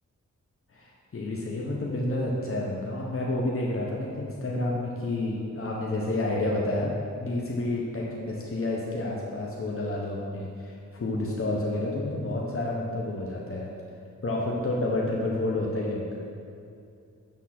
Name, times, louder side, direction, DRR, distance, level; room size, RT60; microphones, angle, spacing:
voice 1, 0.7-6.9 7.2-13.7 14.2-16.2, left 2 dB, 45° left, -3 dB, 0.9 m, -29 dB
8.5 x 3.6 x 5.8 m, 2.5 s
cardioid pair, 75°, 30 cm